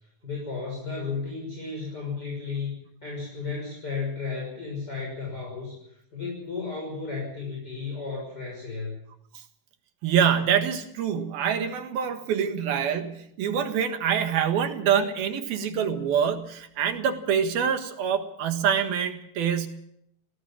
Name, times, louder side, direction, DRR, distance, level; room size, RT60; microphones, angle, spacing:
voice 1, 0.2-2.7 3.0-9.0, left 4 dB, 25° left, -2 dB, 6.8 m, -34 dB
voice 2, 10.0-19.7, right 8 dB, 75° right, 7 dB, 3.5 m, -25 dB
20.5 x 18.0 x 7.3 m, 0.72 s
omnidirectional pair, 4.4 m